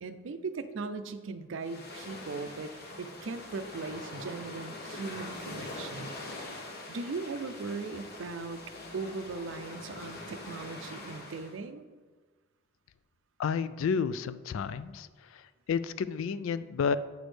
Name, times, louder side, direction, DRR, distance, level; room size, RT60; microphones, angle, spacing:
voice 1, 0.0-6.1 6.9-8.6 8.9-11.8, right 4 dB, 65° right, 10 dB, 0.5 m, -39 dB
sound 1, 1.6-11.6, left 2 dB, 50° left, 1.0 m, -43 dB
voice 2, 13.4-15.1 15.7-17.0, left 6 dB, 75° left, 15 dB, 0.3 m, -30 dB
8.2 x 6.1 x 3.3 m, 1.4 s
head